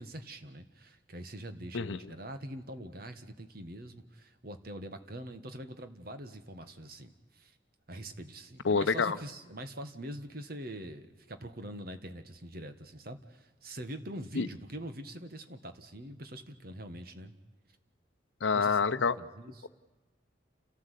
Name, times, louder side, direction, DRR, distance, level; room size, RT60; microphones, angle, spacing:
voice 1, 0.0-7.5 7.9-17.3 18.5-19.7, right 1 dB, 50° right, 9 dB, 1.6 m, -44 dB
voice 2, 8.6-9.2 14.3-14.5 18.4-19.2, left 5 dB, 80° left, 9 dB, 0.7 m, -27 dB
29.5 x 14.0 x 8.3 m, 1.3 s
head